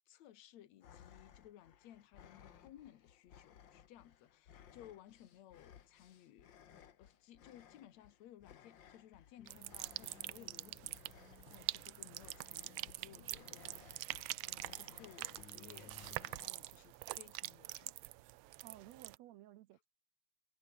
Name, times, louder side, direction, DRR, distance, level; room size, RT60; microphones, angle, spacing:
voice 1, 0.0-6.5 7.0-14.1 14.5-17.9, left 12 dB, 70° left, 2.6 m, -59 dB
sound 1, 0.8-16.5, left 9 dB, 50° left, 1.6 m, -62 dB
sound 2, 9.4-16.5, left 7 dB, 90° left, 4.7 m, -62 dB
sound 3, 9.5-19.2, right 18 dB, 90° right, 1.3 m, -45 dB
voice 2, 18.6-19.9, right 14 dB, 70° right, 1.9 m, -56 dB
omnidirectional pair, 3.4 m